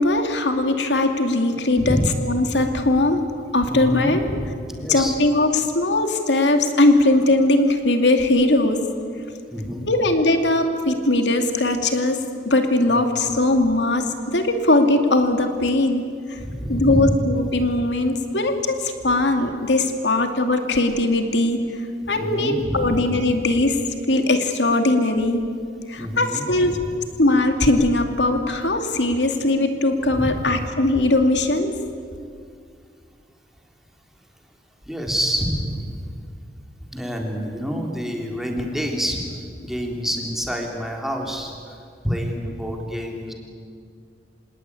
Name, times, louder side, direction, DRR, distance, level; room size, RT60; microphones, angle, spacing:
voice 1, 0.0-2.0 2.3-3.2 3.5-4.2 4.9-8.8 9.9-12.2 12.4-16.0 16.3-16.4 16.7-21.6 22.1-23.8 24.1-25.4 25.9-26.8 27.2-31.7, left 2 dB, 85° left, 5 dB, 2.5 m, -20 dB
voice 2, 1.8-2.1 3.7-5.2 9.5-9.8 12.9-13.0 16.4-17.1 22.1-23.1 26.0-26.9 30.1-30.6 34.9-36.0 36.9-39.2 39.6-41.8 42.0-43.3, equal, ahead, 0 dB, 3.6 m, -27 dB
26.5 x 18.5 x 9.7 m, 2.2 s
head